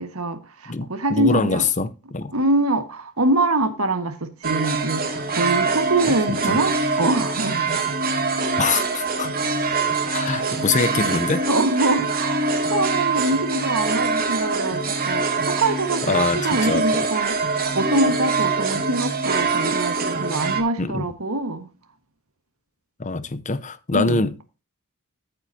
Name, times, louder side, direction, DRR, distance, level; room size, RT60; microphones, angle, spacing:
voice 1, 0.0-1.6 2.3-7.8 10.2-10.3 11.5-21.7 23.9-24.2, right 2 dB, 70° right, 1.7 m, -24 dB
voice 2, 0.7-2.3 6.1-6.6 8.6-9.3 10.1-11.5 16.1-16.8 20.8-21.1 23.0-24.4, left 4 dB, 35° left, 0.7 m, -24 dB
sound 1, 4.4-20.6, right 4 dB, 40° right, 2.4 m, -24 dB
14.0 x 8.1 x 2.8 m
head